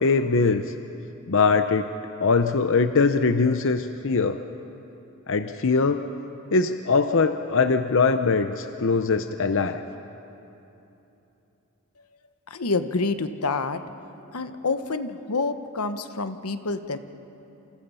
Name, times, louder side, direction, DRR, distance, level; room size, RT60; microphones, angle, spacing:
voice 1, 0.0-0.7 1.3-1.9 2.2-4.4 5.3-6.0 6.5-9.8, left 4 dB, 60° left, 8 dB, 0.7 m, -22 dB
voice 2, 12.5-13.8 14.3-17.0, left 3 dB, 85° left, 9 dB, 1.1 m, -27 dB
28.5 x 28.0 x 5.6 m, 2.9 s
head